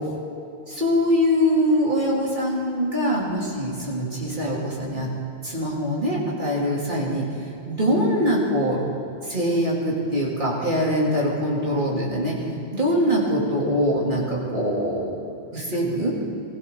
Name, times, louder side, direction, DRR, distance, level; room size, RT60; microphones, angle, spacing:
voice 1, 0.7-5.1 5.4-7.3 7.7-8.8 9.2-12.4 12.7-15.2 15.5-16.1, equal, 45° right, -5 dB, 3.2 m, -23 dB
20.5 x 15.5 x 3.9 m, 2.7 s
omnidirectional pair, 1.1 m